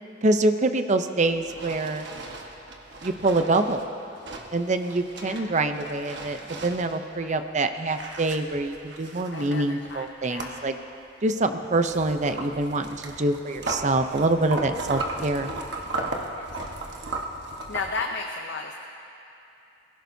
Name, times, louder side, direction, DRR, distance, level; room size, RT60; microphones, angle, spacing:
voice 1, 0.2-2.1 3.0-3.8 4.5-10.8 11.2-15.5, right 2 dB, 40° right, 8 dB, 0.6 m, -25 dB
sound 1, 1.3-7.6 7.9-10.8 11.2-18.0, right 2 dB, 65° right, 1.3 m, -36 dB
voice 2, 5.2-5.6 7.2-7.4 9.3-10.5 16.4-17.0 17.7-18.7, left 4 dB, 65° left, 2 dB, 0.7 m, -35 dB
22.5 x 16.0 x 2.7 m, 2.8 s
head